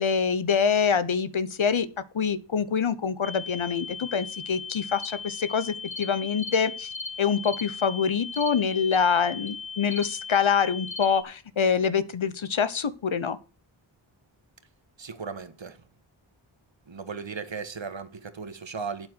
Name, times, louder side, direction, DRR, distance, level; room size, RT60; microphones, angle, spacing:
voice 1, 0.0-1.9 2.1-6.9 7.2-13.4, left 6 dB, 70° left, 1.1 m, -25 dB
sound 1, 3.2-11.2, left 5 dB, 30° right, 2.2 m, -38 dB
sound 2, 5.0-5.1 5.9-6.1 6.4-6.6 6.9-7.1 7.4-7.7 8.3-8.5 8.9-9.0 9.5-9.6 9.9-10.1 10.9-11.1, left 2 dB, 15° left, 1.3 m, -38 dB
voice 2, 15.0-15.9 16.9-19.1, right 5 dB, 65° right, 1.6 m, -36 dB
8.9 x 8.0 x 6.3 m
wide cardioid pair, 50°, 49 cm